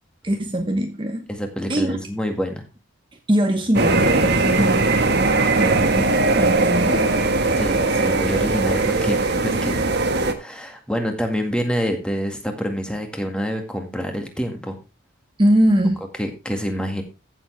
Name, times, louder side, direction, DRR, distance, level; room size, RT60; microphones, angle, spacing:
voice 1, 0.2-1.3 1.7-2.0 3.3-5.3 5.6-7.6 15.4-16.0, right 1 dB, 25° right, 1.1 m, -22 dB
voice 2, 1.3-2.6 7.6-9.9 10.4-14.8 16.2-17.0, equal, 5° left, 1.9 m, -27 dB
sound 1, 3.7-10.3, right 3 dB, 55° right, 1.5 m, -19 dB
15.0 x 7.2 x 3.3 m
head